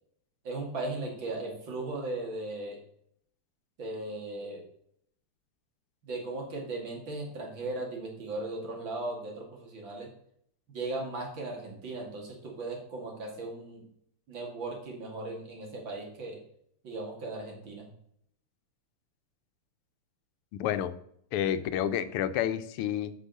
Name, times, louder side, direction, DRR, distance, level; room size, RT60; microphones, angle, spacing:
voice 1, 0.4-2.8 3.8-4.6 6.0-10.1 10.7-13.8 14.3-16.4 16.8-17.9, right 2 dB, 60° right, 0 dB, 3.0 m, -37 dB
voice 2, 20.6-21.0 21.3-23.1, left 10 dB, 90° left, 12 dB, 1.6 m, -29 dB
8.2 x 5.6 x 6.9 m, 0.70 s
omnidirectional pair, 2.4 m